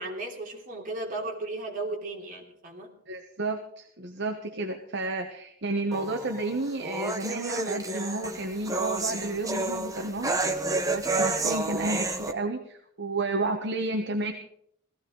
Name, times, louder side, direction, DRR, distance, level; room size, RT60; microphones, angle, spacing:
voice 1, 0.0-2.9, right 2 dB, 45° right, -1 dB, 3.2 m, -35 dB
voice 2, 3.1-10.7 10.9-14.3, right 2 dB, 60° right, 4 dB, 1.1 m, -31 dB
sound 1, 5.9-12.3, right 2 dB, 15° right, 0.9 m, -30 dB
18.0 x 14.5 x 3.9 m, 0.69 s
head